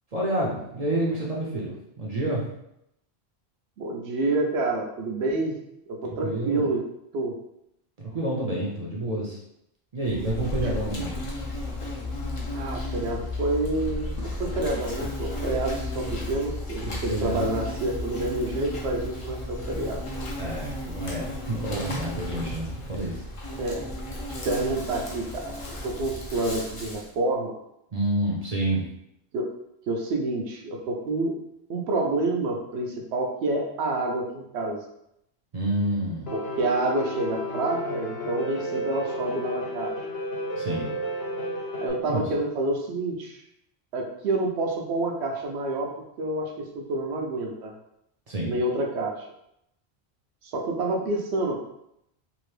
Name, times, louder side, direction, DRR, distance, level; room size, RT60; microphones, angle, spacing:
voice 1, 0.1-2.4 6.1-6.7 8.1-9.4 9.9-11.2 16.9-17.5 20.4-23.2 27.9-28.9 35.5-36.3 40.6-40.9 42.1-42.2 48.3-48.5, right 1 dB, 45° right, -3 dB, 0.6 m, -29 dB
voice 2, 3.8-5.6 5.9-6.8 7.1-7.3 12.5-20.0 23.6-23.9 24.4-27.5 29.3-29.5 29.9-31.3 31.7-34.8 36.3-39.9 41.8-43.4 43.9-45.9 46.2-47.7 48.4-49.3 50.4-51.6, right 2 dB, 80° right, 1 dB, 0.9 m, -28 dB
Insect, 10.1-27.1, left 2 dB, 40° left, 0.5 m, -34 dB
Piano, 36.3-41.9, equal, 70° left, 1.0 m, -32 dB
2.9 x 2.5 x 3.2 m, 0.80 s
omnidirectional pair, 1.1 m